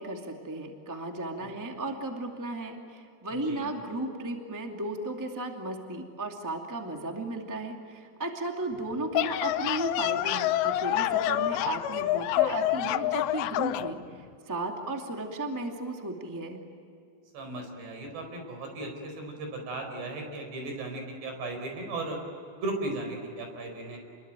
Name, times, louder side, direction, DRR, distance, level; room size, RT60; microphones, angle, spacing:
voice 1, 0.0-16.6, right 2 dB, 10° right, 2 dB, 1.2 m, -35 dB
sound 1, 8.9-13.9, left 13 dB, 85° left, 3.0 m, -27 dB
voice 2, 17.3-22.2 22.6-24.0, right 2 dB, 75° right, 4 dB, 6.7 m, -36 dB
28.5 x 22.0 x 9.1 m, 2.6 s
omnidirectional pair, 4.9 m